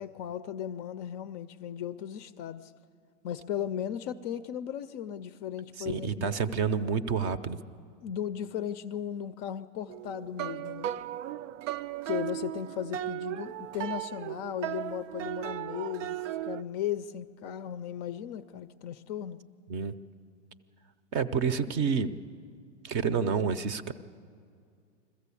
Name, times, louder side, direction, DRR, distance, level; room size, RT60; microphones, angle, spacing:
voice 1, 0.0-2.7 3.2-6.4 8.0-10.9 12.0-19.4, left 10 dB, 35° left, 12 dB, 0.4 m, -36 dB
voice 2, 5.8-7.6 19.7-19.9 21.1-22.1 22.8-23.9, right 6 dB, 30° right, 14 dB, 0.6 m, -29 dB
sound 1, 9.9-16.6, right 13 dB, 75° right, 0.5 m, -36 dB
21.5 x 14.5 x 8.4 m, 2.3 s
hypercardioid pair, 140°, 37 cm